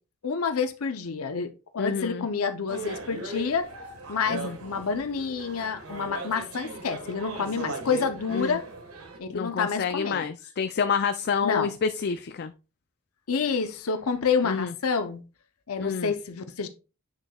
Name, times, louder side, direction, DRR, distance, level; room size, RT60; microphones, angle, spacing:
voice 1, 0.2-3.7 4.1-8.6 9.2-10.3 11.4-11.7 13.3-15.2 15.7-16.7, left 5 dB, 85° left, 0.7 m, -28 dB
voice 2, 1.8-2.3 4.3-4.6 8.3-8.6 9.3-12.5 14.4-14.7 15.8-16.1, left 6 dB, 50° left, 0.4 m, -28 dB
sound 1, 2.7-9.2, right 3 dB, 85° right, 1.5 m, -38 dB
8.2 x 6.5 x 2.3 m
head